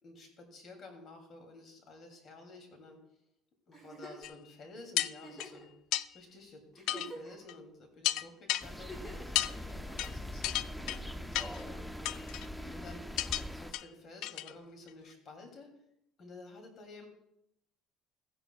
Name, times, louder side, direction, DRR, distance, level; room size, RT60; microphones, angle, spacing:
voice 1, 0.0-3.0 3.7-5.7 6.1-10.5 11.1-12.3 12.7-13.1 13.6-15.7 16.2-17.1, left 2 dB, 45° left, 3 dB, 2.8 m, -52 dB
Giggle, 3.7-4.3 5.2-5.7 6.3-6.4 6.7-7.5 8.7-9.3 10.5-11.1 12.4-12.9 14.4-14.5, right 1 dB, 20° left, 4.0 m, -48 dB
sound 1, 4.2-4.3 5.0-5.5 5.9-6.1 6.9-7.1 7.5-7.6 8.0-8.6 9.3-9.5 10.0-10.1 10.4-11.0 11.3-11.6 12.0-12.5 13.2-13.4 13.7-13.8 14.2-14.5 14.9-15.0, left 14 dB, 75° left, 0.3 m, -32 dB
sound 2, 8.6-13.7, left 1 dB, ahead, 0.5 m, -42 dB
15.5 x 10.0 x 2.4 m, 0.77 s
cardioid pair, 120°, 0 cm